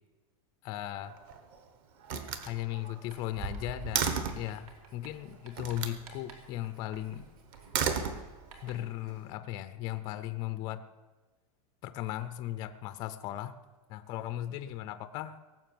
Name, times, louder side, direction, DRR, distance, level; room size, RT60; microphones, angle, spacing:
voice 1, 0.6-1.2 2.4-7.3 8.6-10.8 11.8-13.5 13.9-15.4, left 13 dB, 20° left, 0.4 m, -37 dB
Slam, 1.0-1.6 2.0-4.5 5.6-6.0 7.5-8.7, right 6 dB, 35° right, 1.1 m, -34 dB
Writing, 3.1-9.0, right 4 dB, 70° right, 2.9 m, -56 dB
17.5 x 7.4 x 7.7 m
supercardioid pair, 180°, 19 cm